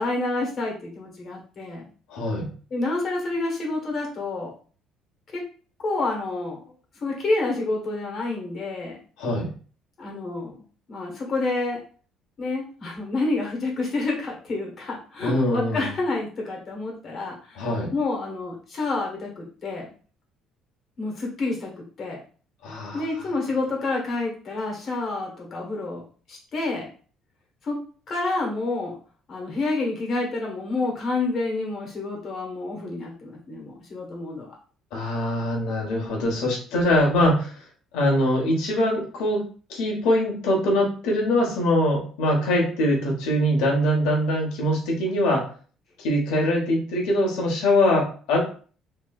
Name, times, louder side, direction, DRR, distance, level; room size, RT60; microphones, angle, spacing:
voice 1, 0.0-1.8 2.7-4.5 5.3-5.4 5.8-6.6 7.0-9.0 10.0-10.6 10.9-11.8 12.4-19.8 21.0-22.2 22.9-26.0 26.3-26.9 27.6-27.8 28.1-28.9 29.3-34.6, left 2 dB, 35° left, -1 dB, 1.1 m, -28 dB
voice 2, 2.1-2.5 9.2-9.5 15.2-15.9 17.5-17.9 22.6-23.0 34.9-37.6 37.9-39.4 39.7-45.4 46.0-48.4, left 1 dB, 90° left, -1 dB, 1.2 m, -23 dB
3.1 x 2.8 x 2.3 m, 0.41 s
cardioid pair, 155°, 0 cm